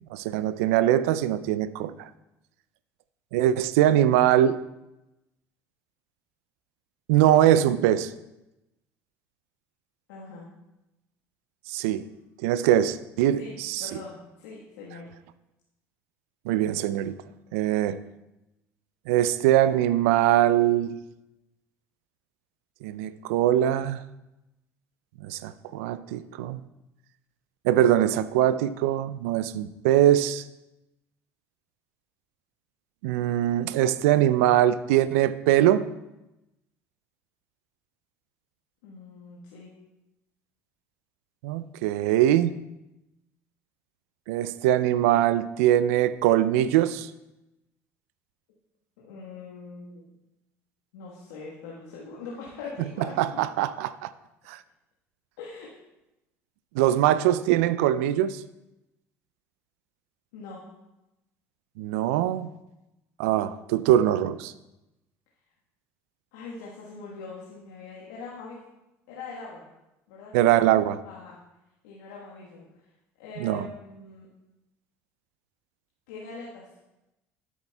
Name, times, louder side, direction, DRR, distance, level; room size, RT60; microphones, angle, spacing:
voice 1, 0.1-2.1 3.3-4.6 7.1-8.1 11.7-12.0 12.4-13.9 16.5-17.2 17.5-18.0 19.1-21.0 22.8-24.0 25.2-26.6 27.6-30.4 33.0-35.9 41.4-42.5 44.3-47.1 53.2-54.1 54.5-54.6 56.7-58.4 61.8-62.5 63.2-64.5 70.3-71.0 73.4-73.6, right 12 dB, 75° right, 16 dB, 0.4 m, -22 dB
voice 2, 10.1-10.5 13.4-15.1 38.8-39.7 49.0-50.0 50.9-53.1 55.4-55.7 56.9-57.0 60.3-60.6 66.3-68.6 69.1-69.6 70.1-70.4 71.0-71.4 71.8-72.7 73.2-74.3 76.1-76.7, left 4 dB, 80° left, -5 dB, 1.3 m, -42 dB
12.5 x 7.2 x 2.2 m, 0.94 s
hypercardioid pair, 65°, 8 cm